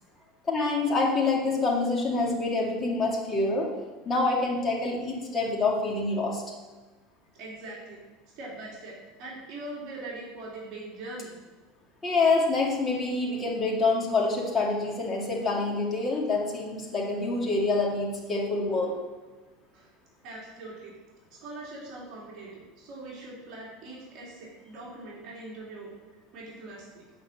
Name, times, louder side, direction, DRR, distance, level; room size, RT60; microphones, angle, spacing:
voice 1, 0.5-3.7 4.0-6.4 12.0-18.9, left 3 dB, 20° left, -2 dB, 2.2 m, -26 dB
voice 2, 7.3-8.0 8.4-11.3 19.7-19.9 20.2-21.0 21.3-25.9 26.3-27.0, right 2 dB, 45° right, -5 dB, 3.1 m, -42 dB
8.5 x 5.6 x 7.4 m, 1.3 s
supercardioid pair, 150°, 0 cm